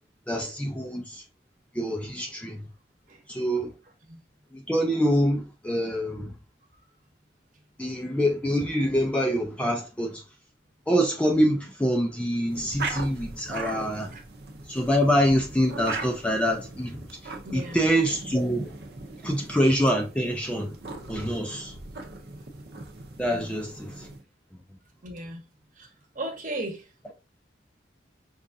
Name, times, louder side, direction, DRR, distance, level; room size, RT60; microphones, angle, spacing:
voice 1, 0.3-1.2 1.7-2.6 3.3-3.7 4.5-6.3 7.8-10.2 10.9-14.1 14.7-18.8 19.2-20.8 21.1-21.7 23.2-24.1, equal, 5° left, 0.4 m, -25 dB
sound 1, 12.4-24.2, right 3 dB, 60° right, 0.7 m, -39 dB
voice 2, 17.4-17.8 21.5-21.6 23.3-23.5 25.0-25.4 25.8-25.9 26.1-27.1, right 1 dB, 45° right, 1.0 m, -36 dB
5.1 x 2.4 x 2.6 m
head